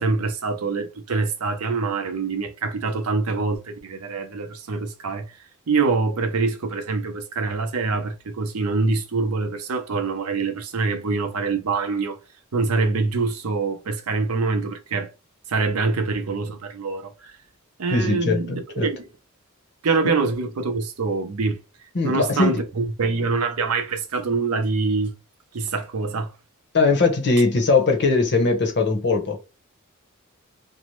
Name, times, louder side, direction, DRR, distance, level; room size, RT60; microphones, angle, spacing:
voice 1, 0.0-5.4 5.7-12.2 12.5-15.1 15.5-17.4 17.8-19.0 19.8-25.1 25.5-26.3, right 4 dB, 75° right, 0.6 m, -25 dB
voice 2, 17.9-18.9 21.9-22.6 26.7-29.4, left 3 dB, 50° left, 0.7 m, -20 dB
2.6 x 2.0 x 3.0 m
head